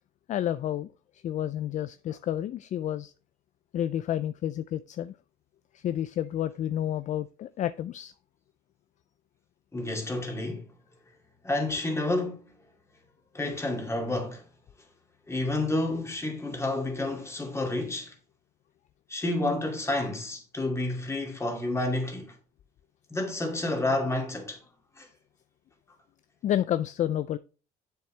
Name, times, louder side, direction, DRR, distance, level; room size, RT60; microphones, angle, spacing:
voice 1, 0.3-0.9 1.2-3.1 3.7-5.1 5.7-8.1 26.4-27.4, left 11 dB, 45° left, 0.4 m, -30 dB
voice 2, 9.7-10.7 11.4-12.5 13.3-14.4 15.3-18.1 19.1-22.3 23.1-24.6 25.0-25.1, left 2 dB, 15° left, 2.3 m, -30 dB
7.7 x 6.9 x 3.3 m
cardioid pair, 110°, 17 cm